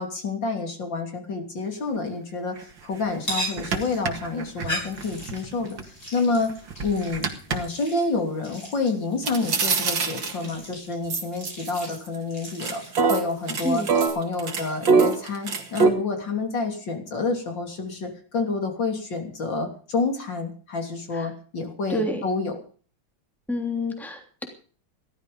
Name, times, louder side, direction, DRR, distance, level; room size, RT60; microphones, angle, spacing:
voice 1, 0.0-6.5 6.8-12.8 13.1-13.8 14.1-22.6, left 3 dB, 70° left, 4 dB, 3.9 m, -28 dB
sound 1, 2.6-2.7 3.0-3.1 3.6-5.8 6.3-7.6 9.2-10.5 11.1-12.2 12.5-15.9, right 4 dB, 70° right, 2.7 m, -24 dB
sound 2, 3.1-14.1, right 1 dB, 50° left, 8.8 m, -39 dB
voice 2, 21.9-22.2 23.5-24.4, left 1 dB, ahead, 3 dB, 3.0 m, -28 dB
17.0 x 13.0 x 5.4 m, 0.41 s
omnidirectional pair, 2.1 m